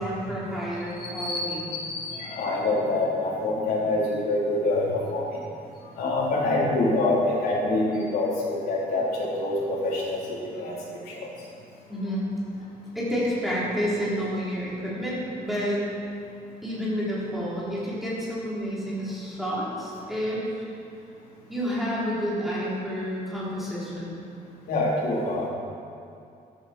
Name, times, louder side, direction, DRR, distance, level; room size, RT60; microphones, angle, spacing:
voice 1, 0.0-1.7 11.9-12.2 12.9-15.8 16.6-20.6 21.5-24.1, equal, ahead, -9 dB, 3.9 m, -29 dB
voice 2, 1.0-1.5 1.7-5.4 6.0-10.8 11.1-11.3 24.7-25.5, left 2 dB, 80° left, -6 dB, 3.9 m, -26 dB
14.0 x 12.5 x 4.6 m, 2.5 s
cardioid pair, 170°, 16 cm